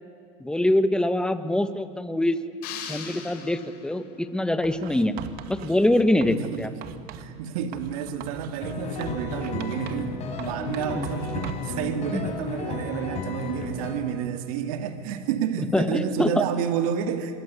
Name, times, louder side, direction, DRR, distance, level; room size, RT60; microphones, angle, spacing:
voice 1, 0.4-2.4 2.9-5.1 5.5-6.7 10.9-11.1 12.1-12.2 15.6-16.4, left 1 dB, 5° left, 10 dB, 1.7 m, -24 dB
sound 1, 2.6-4.2, left 8 dB, 60° left, 5.1 m, -39 dB
Writing, 4.6-7.3 7.7-10.1 10.4-11.8, right 9 dB, 55° right, 2.2 m, -41 dB
voice 2, 6.3-6.8 7.2-17.4, right 8 dB, 75° right, 8 dB, 2.4 m, -30 dB
sound 2, 8.6-13.9, left 4 dB, 35° left, 6.5 m, -33 dB
27.0 x 22.5 x 9.9 m, 2.4 s
supercardioid pair, 115°, 18 cm